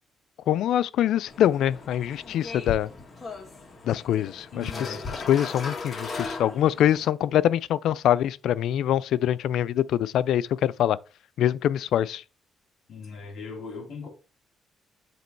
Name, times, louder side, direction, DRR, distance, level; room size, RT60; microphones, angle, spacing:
voice 1, 0.5-2.9 3.8-11.0 11.4-12.2, left 11 dB, 80° left, 0.3 m, -24 dB
sound 1, 1.3-7.1, left 4 dB, 35° left, 2.0 m, -37 dB
voice 2, 4.5-5.0 12.9-14.1, left 4 dB, 60° left, 3.2 m, -38 dB
7.8 x 3.0 x 4.5 m
cardioid pair, 90°, 0 cm